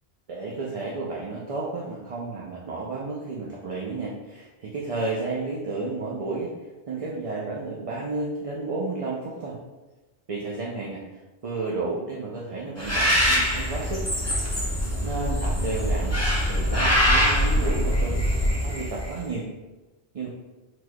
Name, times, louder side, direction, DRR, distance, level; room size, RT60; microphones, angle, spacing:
voice 1, 0.3-6.5 6.9-9.6 10.3-11.0 11.4-14.0 14.6-16.2 16.5-18.2 18.6-19.5 20.1-20.3, right 3 dB, 40° right, -4 dB, 0.6 m, -32 dB
Bird, 12.8-19.2, equal, 15° left, 0.9 m, -23 dB
4.7 x 4.0 x 2.2 m, 1.1 s
omnidirectional pair, 1.0 m